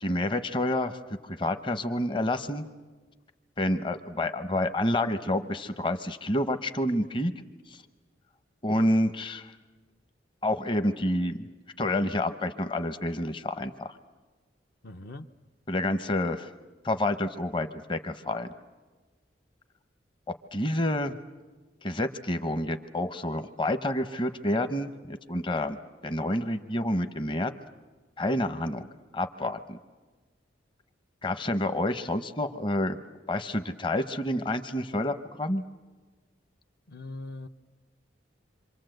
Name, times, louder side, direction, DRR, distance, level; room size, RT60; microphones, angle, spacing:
voice 1, 0.0-2.7 3.6-7.3 7.7-7.8 8.6-9.5 10.4-11.5 11.8-14.0 15.7-16.5 16.8-18.5 20.3-21.1 21.8-25.8 26.0-27.5 28.2-28.9 29.1-29.8 31.2-33.0 33.3-35.6, left 1 dB, 25° left, 9 dB, 0.8 m, -28 dB
voice 2, 14.8-15.3 36.9-37.5, left 2 dB, 55° left, 6 dB, 0.8 m, -40 dB
27.0 x 25.5 x 7.8 m, 1.3 s
head